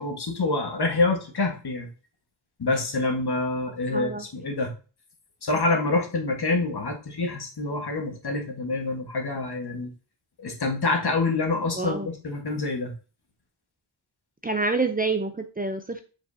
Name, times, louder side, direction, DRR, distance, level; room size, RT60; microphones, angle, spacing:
voice 1, 0.0-1.9 2.6-4.7 5.4-9.9 10.4-12.9, left 3 dB, 55° left, 2 dB, 1.7 m, -26 dB
voice 2, 3.9-4.2 11.8-12.1 14.4-16.0, right 3 dB, 20° right, 6 dB, 0.5 m, -27 dB
7.1 x 5.3 x 2.8 m, 0.35 s
wide cardioid pair, 130°, 47 cm